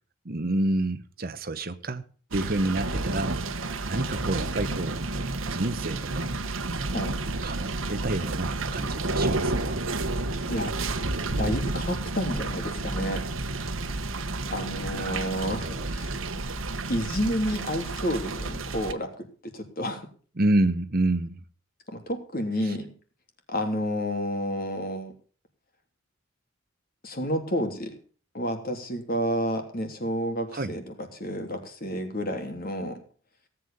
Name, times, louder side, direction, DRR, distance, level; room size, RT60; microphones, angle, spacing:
voice 1, 0.2-2.0 2.3-5.1 5.5-6.4 7.4-9.8 14.9-15.9 20.4-21.4 22.6-22.7 30.5-30.7, right 2 dB, 45° right, 1.0 m, -29 dB
sound 1, 2.3-18.9, right 2 dB, 75° right, 1.3 m, -31 dB
voice 2, 11.4-13.3 14.5-16.2 16.9-19.1 19.4-20.1 21.9-22.9 23.5-25.1 27.0-27.9 28.3-33.0, equal, 45° left, 3.2 m, -30 dB
17.5 x 8.4 x 6.8 m
head